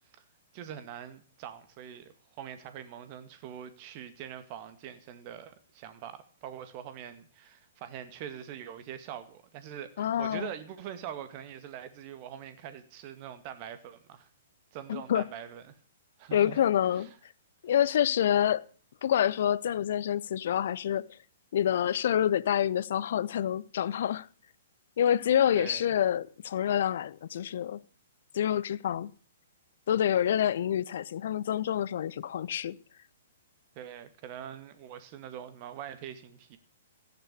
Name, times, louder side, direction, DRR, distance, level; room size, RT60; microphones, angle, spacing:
voice 1, 0.5-14.3 14.7-15.8 16.2-16.6 16.9-17.2 25.5-25.8 33.8-36.6, right 9 dB, 35° right, 2.0 m, -43 dB
voice 2, 10.0-10.5 14.9-15.2 16.3-17.1 17.6-18.6 19.0-21.1 21.5-24.3 25.0-27.8 28.3-29.1 29.9-32.8, left 10 dB, 55° left, 0.7 m, -27 dB
14.5 x 10.5 x 6.9 m
figure-of-eight pair, 115°, 0 cm